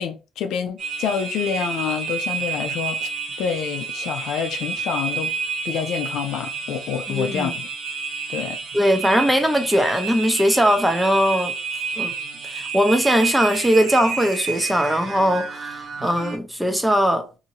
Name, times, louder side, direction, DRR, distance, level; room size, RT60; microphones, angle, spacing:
voice 1, 0.0-3.1 3.4-5.3 5.6-7.7 8.3-8.6, left 7 dB, 75° left, 0.5 m, -27 dB
sound 1, 0.8-16.4, right 5 dB, 60° right, 0.9 m, -30 dB
voice 2, 7.1-7.5 8.7-11.5 12.0-12.1 12.5-17.3, equal, 5° right, 0.7 m, -20 dB
2.7 x 2.7 x 2.8 m
supercardioid pair, 60°, 0 cm